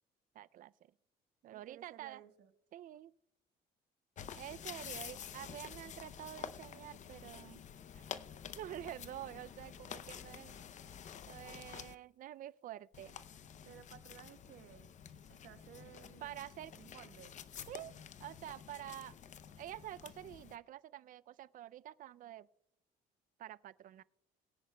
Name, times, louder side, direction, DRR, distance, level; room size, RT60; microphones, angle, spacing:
voice 1, 0.3-0.9 1.4-2.2 2.7-3.1 4.4-7.6 7.9-8.0 8.6-10.6 11.3-13.2 16.2-16.7 17.7-17.9 18.2-19.2 19.6-22.5 23.4-24.0, right 12 dB, 55° right, 0.4 m, -48 dB
voice 2, 1.5-2.5 13.6-14.9 15.3-16.4 16.7-17.4, right 11 dB, 80° right, 1.1 m, -57 dB
sound 1, 4.2-11.9 12.9-20.6, left 8 dB, 45° left, 0.6 m, -50 dB
22.5 x 10.0 x 2.2 m
cardioid pair, 110°, 17 cm